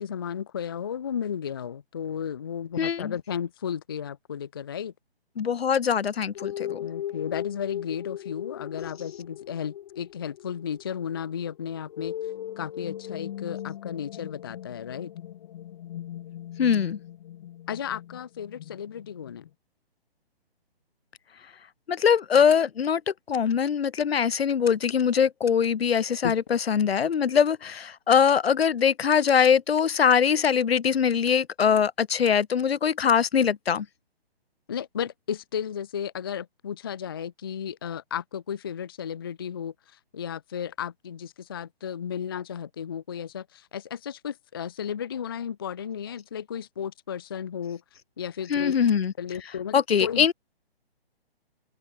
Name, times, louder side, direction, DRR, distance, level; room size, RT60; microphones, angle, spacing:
voice 1, 0.0-4.9 6.8-12.2 12.6-15.1 17.7-19.4 26.2-26.3 34.7-47.8 48.2-48.8 49.2-50.3, left 8 dB, 25° left, 0.4 m, -34 dB
voice 2, 2.8-3.1 5.4-6.8 16.6-17.0 21.9-33.9 48.5-49.1 49.7-50.3, left 7 dB, 75° left, 0.9 m, -22 dB
sound 1, 6.4-19.5, left 11 dB, 40° left, 2.8 m, -39 dB
open air
hypercardioid pair, 145°, 31 cm